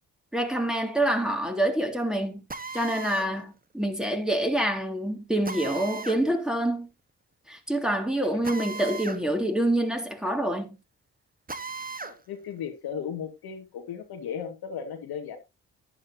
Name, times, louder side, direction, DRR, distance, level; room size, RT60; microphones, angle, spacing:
voice 1, 0.3-2.4 2.7-6.9 7.5-10.8, right 1 dB, ahead, 3.6 m, -26 dB
Drill, 2.5-3.3 5.4-6.2 8.4-9.2 9.6-9.7 11.5-12.2, right 4 dB, 25° right, 1.4 m, -37 dB
voice 2, 12.0-15.4, left 7 dB, 75° left, 2.1 m, -36 dB
11.5 x 9.8 x 2.9 m
hypercardioid pair, 45°, 38 cm